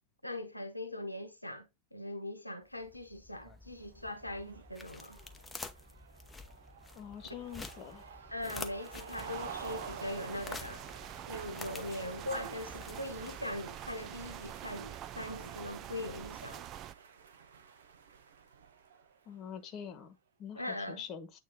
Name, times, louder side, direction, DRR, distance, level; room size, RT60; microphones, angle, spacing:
voice 1, 0.2-5.2 8.3-10.8 11.3-16.6 20.5-21.0, left 1 dB, 85° left, 1.1 m, -41 dB
sound 1, 2.7-13.8, left 3 dB, 10° left, 0.8 m, -49 dB
sound 2, 3.8-19.5, right 6 dB, 65° right, 0.9 m, -51 dB
voice 2, 6.9-8.1 19.3-21.4, left 8 dB, 35° left, 1.2 m, -45 dB
sound 3, 9.2-16.9, right 11 dB, 35° right, 0.4 m, -46 dB
8.7 x 3.1 x 3.7 m
figure-of-eight pair, 90°, 0 cm